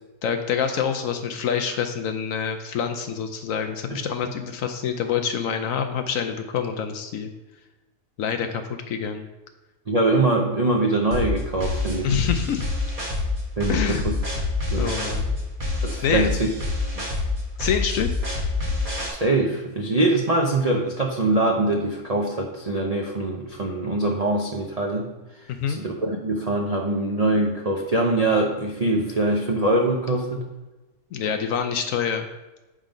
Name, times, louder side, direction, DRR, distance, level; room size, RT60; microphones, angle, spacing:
voice 1, 0.2-7.3 8.2-9.3 12.0-12.6 13.7-14.0 14.8-15.3 16.0-16.4 17.6-18.1 25.6-25.8 31.1-32.3, left 7 dB, 70° left, 6 dB, 0.8 m, -26 dB
voice 2, 9.9-12.1 13.6-14.1 14.7-15.0 15.8-16.5 17.0-17.1 19.1-25.1 25.7-30.4, right 2 dB, 60° right, 0 dB, 0.4 m, -23 dB
sound 1, 11.1-19.1, left 3 dB, 25° right, 1.2 m, -26 dB
7.4 x 3.7 x 5.1 m, 1.1 s
omnidirectional pair, 1.7 m